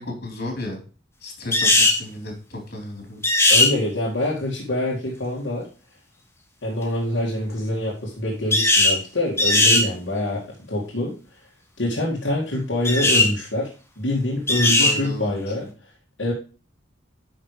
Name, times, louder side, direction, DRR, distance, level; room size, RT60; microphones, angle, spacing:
voice 1, 0.2-0.8 1.2-3.2 14.8-15.3, left 1 dB, 55° left, 2 dB, 3.8 m, -33 dB
sound 1, 1.5-2.0 3.2-3.7 8.5-9.0 9.4-9.9 12.8-13.3 14.5-15.0, left 2 dB, 15° left, 1.5 m, -17 dB
voice 2, 3.5-5.7 6.6-10.4 10.7-11.1 11.8-13.7 14.0-15.7 16.2-16.3, left 1 dB, 75° left, -4 dB, 2.2 m, -25 dB
10.0 x 5.8 x 3.3 m, 0.35 s
head